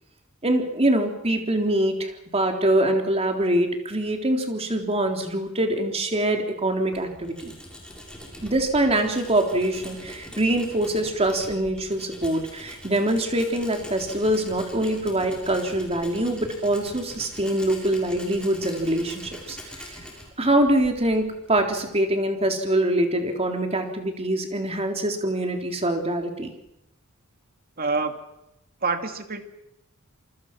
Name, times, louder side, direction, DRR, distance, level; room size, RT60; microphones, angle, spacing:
voice 1, 0.4-7.6 8.4-19.9 20.4-26.5, right 1 dB, 30° right, 3 dB, 3.7 m, -24 dB
Tools, 6.7-22.1, equal, 5° left, 7.2 m, -43 dB
voice 2, 27.8-28.2 28.8-29.4, right 4 dB, 45° right, 6 dB, 2.6 m, -26 dB
28.0 x 24.5 x 6.1 m, 0.87 s
head